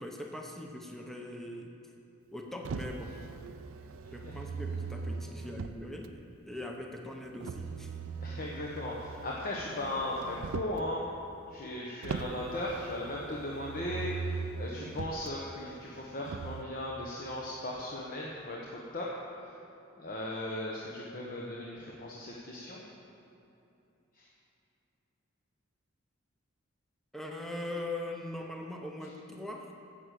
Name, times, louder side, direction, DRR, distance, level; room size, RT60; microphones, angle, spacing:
voice 1, 0.0-1.7 2.3-3.2 4.1-8.0 27.1-29.7, left 1 dB, ahead, 1 dB, 0.8 m, -41 dB
Motor vehicle (road), 2.6-6.1 7.4-10.9 12.0-15.3 16.2-16.6, right 5 dB, 80° right, 0.4 m, -40 dB
voice 2, 8.2-11.0 11.5-19.1 19.4-19.5 20.0-22.8 24.2-24.3, left 1 dB, 45° left, -4 dB, 1.1 m, -37 dB
9.7 x 7.6 x 8.4 m, 2.8 s
head